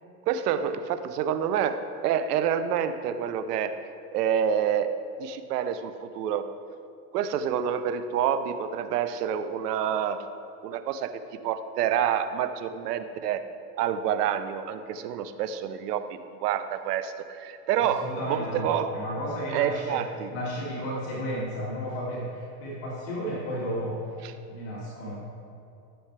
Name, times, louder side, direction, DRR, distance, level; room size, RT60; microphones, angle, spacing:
voice 1, 0.3-3.8 4.1-4.9 5.2-6.5 7.1-10.2 10.6-11.1 11.4-13.4 13.8-16.1 16.4-18.9 19.5-20.3 24.2-24.3, right 9 dB, 70° right, 10 dB, 0.9 m, -28 dB
voice 2, 17.8-20.0 20.3-24.1 24.5-25.1, equal, 45° left, -6 dB, 2.4 m, -33 dB
13.5 x 7.1 x 3.3 m, 2.7 s
supercardioid pair, 145°, 50 cm